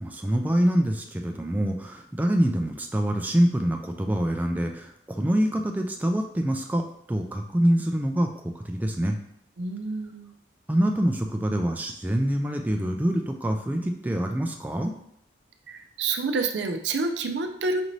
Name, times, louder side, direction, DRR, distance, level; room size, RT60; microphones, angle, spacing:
voice 1, 0.0-6.8 7.1-8.3 8.6-9.2 10.7-14.9, equal, 10° right, 3 dB, 0.3 m, -25 dB
voice 2, 9.6-10.3 15.7-17.8, right 3 dB, 80° right, 5 dB, 0.5 m, -28 dB
5.1 x 2.6 x 3.0 m, 0.73 s
head